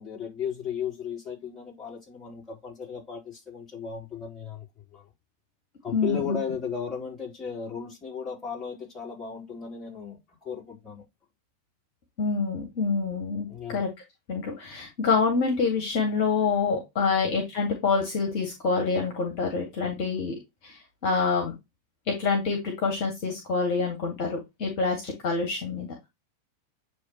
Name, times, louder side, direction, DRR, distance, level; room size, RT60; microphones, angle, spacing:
voice 1, 0.0-4.7 4.9-5.1 5.8-11.0 13.5-13.8 17.0-17.1, left 7 dB, 15° left, 3.8 m, -35 dB
voice 2, 5.9-6.4 12.2-13.9 14.3-20.3 20.6-20.7 21.0-21.5 22.1-25.9, left 4 dB, 45° left, 2.1 m, -26 dB
9.2 x 3.3 x 3.1 m
figure-of-eight pair, 90°, 0 cm